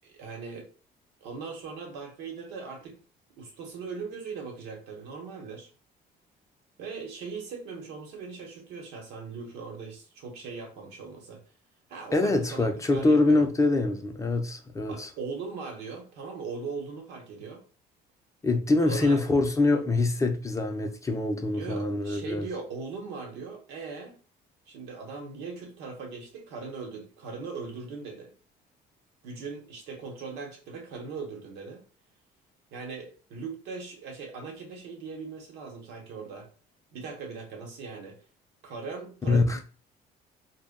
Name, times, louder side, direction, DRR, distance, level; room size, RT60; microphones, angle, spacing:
voice 1, 0.0-0.7 1.2-3.0 3.4-5.7 6.8-11.4 11.9-13.5 14.9-17.7 18.9-19.2 21.5-24.2 24.7-28.3 29.2-31.9 32.7-36.5 36.9-38.2 38.6-39.6, right 4 dB, 90° right, 0.9 m, -39 dB
voice 2, 12.1-15.1 18.4-22.5 39.3-39.6, left 2 dB, 20° left, 0.4 m, -24 dB
2.2 x 2.0 x 3.5 m
cardioid pair, 110°, 17 cm